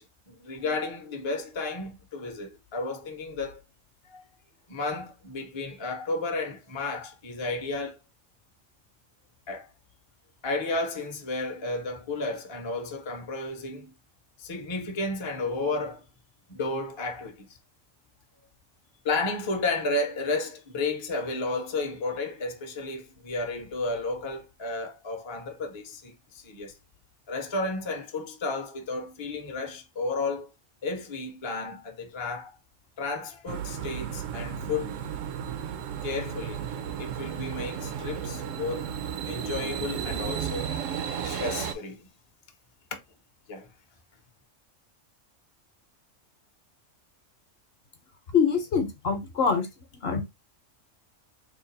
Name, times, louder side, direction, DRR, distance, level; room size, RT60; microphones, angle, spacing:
voice 1, 0.0-3.6 4.1-4.2 4.7-8.0 9.5-9.7 10.4-13.9 14.4-16.0 16.5-17.5 19.0-26.8 27.3-30.5 30.8-32.5 33.0-35.0 36.0-36.7 37.0-38.9 39.2-40.7 41.2-42.0 43.5-43.7, left 3 dB, 35° left, 0.5 m, -32 dB
sound 1, 33.5-41.7, right 8 dB, 75° right, 0.9 m, -34 dB
voice 2, 48.3-49.7 49.9-50.2, left 6 dB, 55° left, 0.9 m, -24 dB
3.3 x 2.3 x 3.9 m
omnidirectional pair, 1.3 m